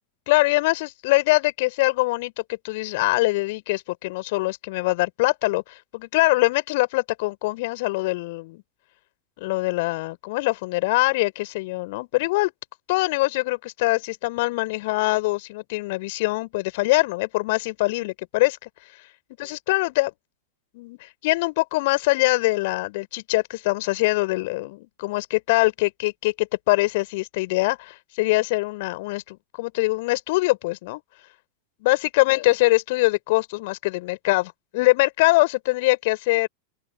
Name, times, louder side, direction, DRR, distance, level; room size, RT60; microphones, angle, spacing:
voice 1, 0.3-8.6 9.4-12.5 12.9-18.7 19.4-20.1 20.7-31.0 31.8-36.5, left 22 dB, 50° left, 4.4 m, -23 dB
open air
figure-of-eight pair, 90°, 0 cm